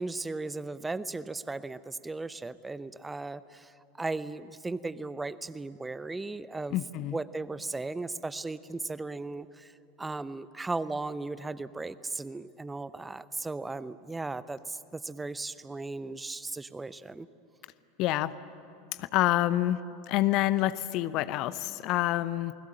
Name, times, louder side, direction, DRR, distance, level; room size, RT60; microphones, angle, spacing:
voice 1, 0.0-3.7 4.0-6.8 7.1-9.7 10.0-17.3, right 3 dB, 10° right, 16 dB, 0.7 m, -36 dB
voice 2, 6.7-7.2 18.0-18.3 19.0-19.8 20.1-22.5, left 15 dB, 45° left, 16 dB, 0.7 m, -27 dB
28.0 x 21.0 x 7.7 m, 2.7 s
figure-of-eight pair, 80°, 0 cm